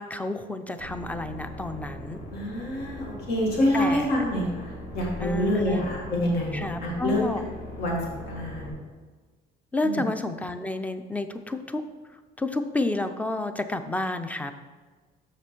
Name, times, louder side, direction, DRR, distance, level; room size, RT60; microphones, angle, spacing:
voice 1, 0.0-2.2 3.7-4.2 5.2-5.8 6.5-7.4 9.7-11.8 12.4-14.5, left 2 dB, 10° left, 9 dB, 0.5 m, -30 dB
sound 1, 0.8-8.7, equal, 50° left, 2.1 m, -40 dB
voice 2, 2.3-7.3 7.8-8.0 8.3-8.8 9.8-10.0, left 1 dB, 70° left, -3 dB, 2.0 m, -27 dB
6.7 x 5.8 x 4.5 m, 1.4 s
cardioid pair, 110°, 17 cm